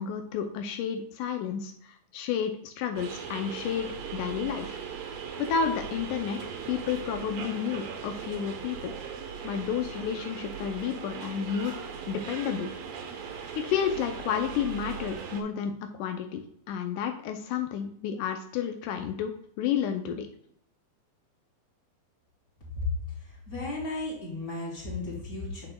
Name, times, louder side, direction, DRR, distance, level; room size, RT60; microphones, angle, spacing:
voice 1, 0.0-4.8 5.4-8.9 9.4-12.7 13.6-15.7 16.0-19.3 19.6-20.3, left 8 dB, 85° left, 5 dB, 2.1 m, -31 dB
sound 1, 3.0-15.4, right 7 dB, 70° right, 1.8 m, -39 dB
voice 2, 23.5-25.7, left 2 dB, 20° left, -5 dB, 2.6 m, -35 dB
8.2 x 6.6 x 2.2 m, 0.68 s
omnidirectional pair, 3.6 m